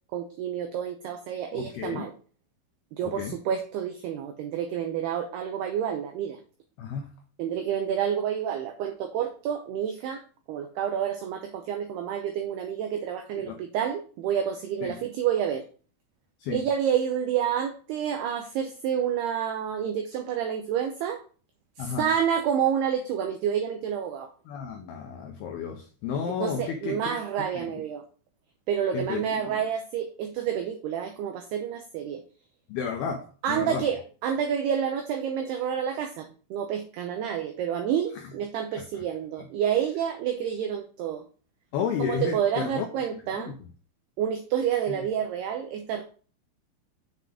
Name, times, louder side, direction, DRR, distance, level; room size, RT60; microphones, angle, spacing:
voice 1, 0.1-2.1 3.0-6.4 7.4-10.2 10.5-15.7 16.5-21.2 21.8-24.3 26.3-28.0 28.7-32.2 33.4-41.2 42.0-43.5 44.2-46.0, right 8 dB, 90° right, 6 dB, 2.2 m, -29 dB
voice 2, 1.5-2.1 3.0-3.4 6.8-7.1 13.3-13.6 14.8-15.0 16.4-16.6 21.8-22.1 24.5-27.2 27.5-27.8 28.9-29.6 32.7-33.9 38.2-38.3 38.7-39.0 41.7-43.5 44.9-45.0, left 7 dB, 90° left, 3 dB, 2.2 m, -33 dB
7.5 x 5.9 x 3.5 m, 0.38 s
omnidirectional pair, 5.6 m